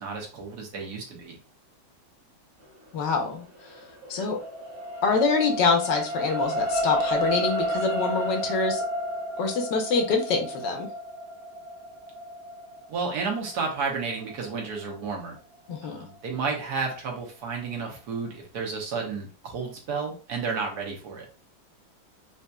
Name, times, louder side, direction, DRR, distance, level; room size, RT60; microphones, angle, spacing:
voice 1, 0.0-1.4 12.9-15.4 15.8-21.2, right 5 dB, 65° right, 0 dB, 1.4 m, -32 dB
voice 2, 2.9-3.4 4.1-4.4 5.0-8.8 9.4-10.9 15.7-16.0, left 4 dB, 80° left, 4 dB, 1.4 m, -25 dB
sound 1, 3.6-16.1 16.6-16.7, equal, 40° right, 1.5 m, -32 dB
4.3 x 2.7 x 2.2 m, 0.37 s
omnidirectional pair, 1.9 m